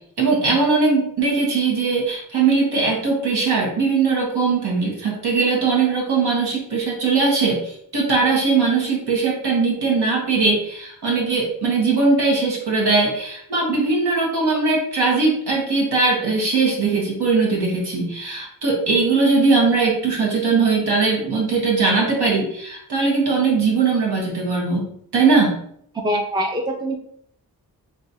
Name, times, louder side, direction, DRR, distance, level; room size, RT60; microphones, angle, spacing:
voice 1, 0.2-25.6, right 4 dB, 75° right, -3 dB, 1.2 m, -20 dB
voice 2, 26.0-27.0, equal, 10° right, 2 dB, 0.5 m, -23 dB
3.0 x 2.4 x 4.1 m, 0.68 s
cardioid pair, 40°, 40 cm